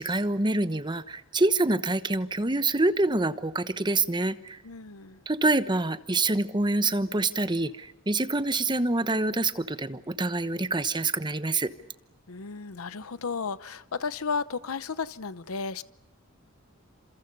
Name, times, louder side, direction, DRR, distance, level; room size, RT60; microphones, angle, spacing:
voice 1, 0.0-4.6 5.3-11.7, right 2 dB, 20° right, 12 dB, 1.0 m, -26 dB
voice 2, 4.6-5.2 12.3-15.8, left 5 dB, 90° left, 15 dB, 0.8 m, -33 dB
29.5 x 27.5 x 5.4 m, 0.88 s
head